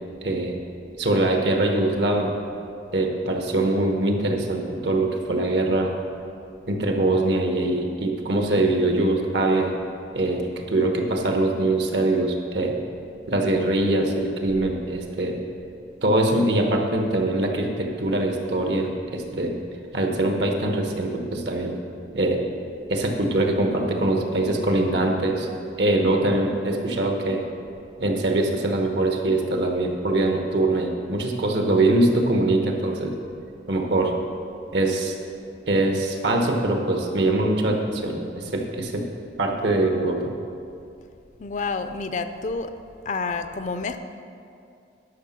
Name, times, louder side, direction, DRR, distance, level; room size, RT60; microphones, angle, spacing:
voice 1, 0.2-0.6 1.0-2.3 2.9-5.9 6.7-9.7 10.1-12.8 13.3-15.4 16.0-19.6 19.9-21.8 22.1-22.4 22.9-25.5 25.8-27.4 28.0-33.1 33.7-34.2 34.7-35.2 35.7-39.1 39.4-40.3, right 2 dB, 75° right, 2 dB, 1.2 m, -23 dB
voice 2, 41.4-42.7 43.1-44.0, left 4 dB, 45° left, 9 dB, 0.4 m, -29 dB
11.5 x 5.8 x 5.9 m, 2.5 s
head